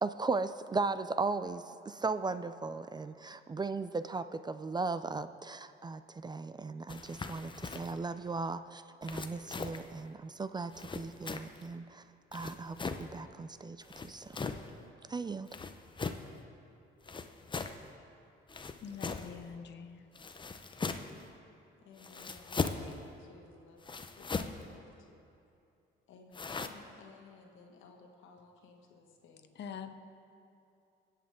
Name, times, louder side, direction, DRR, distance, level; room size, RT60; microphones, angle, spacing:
voice 1, 0.0-12.0 12.3-14.4 15.1-15.5, right 3 dB, 20° right, 12 dB, 0.3 m, -37 dB
Footsteps Mountain Boots Grass Mono, 6.9-8.0 9.0-9.9 10.7-11.7 12.3-13.1 13.8-14.7 15.5-16.3 17.0-17.8 18.5-19.4 20.2-21.2 22.0-22.9 23.8-24.7 26.3-26.7, left 4 dB, 25° left, 0.7 m, -39 dB
voice 2, 18.8-20.1 29.6-29.9, left 7 dB, 60° left, 8 dB, 0.8 m, -44 dB
voice 3, 21.8-25.3 26.1-29.6, left 4 dB, 80° left, 2 dB, 1.5 m, -57 dB
21.5 x 8.3 x 3.7 m, 2.6 s
cardioid pair, 90°, 20 cm